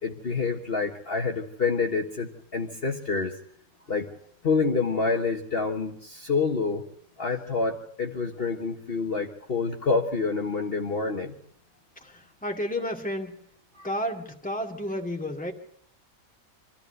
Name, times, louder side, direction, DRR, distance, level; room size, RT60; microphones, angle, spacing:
voice 1, 0.0-3.4 3.9-4.1 4.4-6.9 7.2-11.3 13.7-13.9, left 4 dB, 45° left, 2 dB, 1.5 m, -27 dB
voice 2, 12.0-13.4 13.8-15.5, equal, 5° left, 2 dB, 2.3 m, -31 dB
25.5 x 14.0 x 7.9 m, 0.72 s
omnidirectional pair, 1.5 m